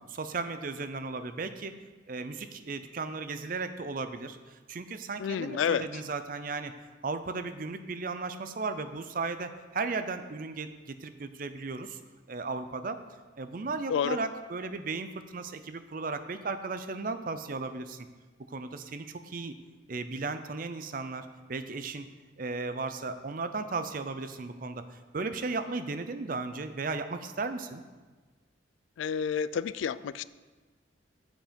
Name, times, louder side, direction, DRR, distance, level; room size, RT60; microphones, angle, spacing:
voice 1, 0.1-1.7 2.1-6.7 7.0-12.0 12.3-13.0 13.4-18.1 18.5-19.5 19.9-22.1 22.4-27.8, right 3 dB, 45° right, 10 dB, 0.6 m, -35 dB
voice 2, 5.2-6.0 13.9-14.2 29.0-30.2, left 7 dB, 90° left, 17 dB, 0.3 m, -30 dB
7.8 x 7.4 x 5.2 m, 1.3 s
head